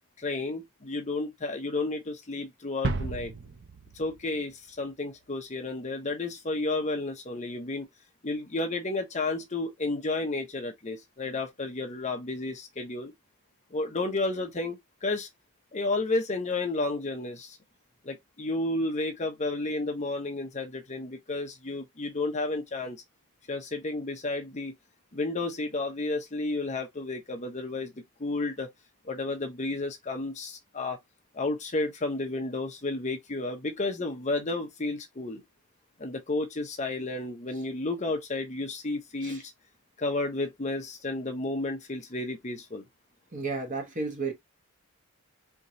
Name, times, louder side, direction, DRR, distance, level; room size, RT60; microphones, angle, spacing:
voice 1, 0.2-3.3 3.9-7.9 8.2-13.1 13.7-15.3 15.7-17.6 18.0-23.0 23.5-24.7 25.1-28.7 29.0-31.0 31.3-35.4 36.0-39.5 40.0-42.8, left 2 dB, 30° left, 0.8 m, -32 dB
sound 1, 2.8-4.9, right 3 dB, 50° right, 0.6 m, -34 dB
voice 2, 43.3-44.3, right 4 dB, 35° right, 1.3 m, -32 dB
4.5 x 2.9 x 2.6 m
head